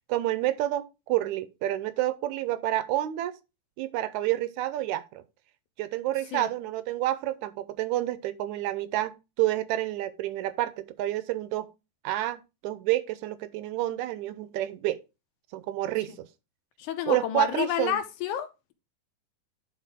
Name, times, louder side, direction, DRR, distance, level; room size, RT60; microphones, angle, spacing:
voice 1, 0.1-3.4 3.8-5.2 5.8-11.7 12.0-15.0 15.5-16.3 17.1-18.0, right 14 dB, 80° right, 1.8 m, -29 dB
voice 2, 16.8-18.7, left 11 dB, 80° left, 2.2 m, -30 dB
10.5 x 4.2 x 3.5 m
omnidirectional pair, 3.6 m